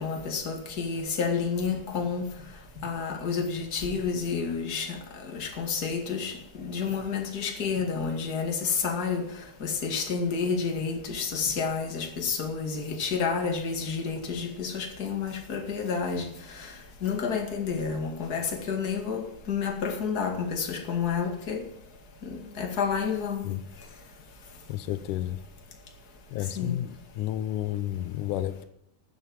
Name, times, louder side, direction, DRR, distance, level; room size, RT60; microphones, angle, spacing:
voice 1, 0.0-2.3 2.8-9.3 9.6-16.7 17.0-21.6 22.2-23.4 26.6-26.8, left 5 dB, 35° left, 2.3 m, -30 dB
voice 2, 24.7-25.4 26.3-28.6, left 13 dB, 85° left, 2.3 m, -31 dB
13.0 x 7.9 x 9.4 m
omnidirectional pair, 3.5 m